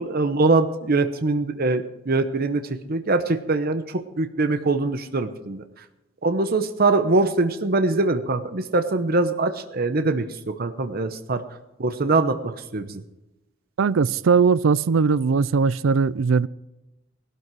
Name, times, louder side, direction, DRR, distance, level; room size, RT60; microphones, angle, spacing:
voice 1, 0.0-5.8 6.2-11.4 11.8-13.0, right 3 dB, 50° right, 0.9 m, -23 dB
voice 2, 13.8-16.5, right 5 dB, 75° right, 0.5 m, -19 dB
17.5 x 12.5 x 4.7 m
head